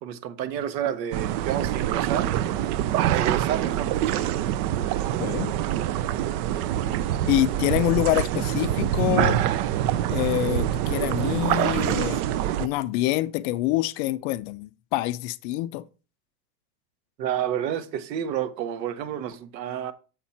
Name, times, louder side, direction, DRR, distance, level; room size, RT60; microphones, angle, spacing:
voice 1, 0.0-2.3 3.1-4.2 17.2-19.9, right 10 dB, 85° right, 1.2 m, -30 dB
sound 1, 1.1-12.7, right 12 dB, 65° right, 0.6 m, -25 dB
voice 2, 5.2-5.5 7.3-9.5 10.1-12.2 12.6-15.8, left 16 dB, 45° left, 0.4 m, -26 dB
7.3 x 5.8 x 4.2 m
supercardioid pair, 145°, 49 cm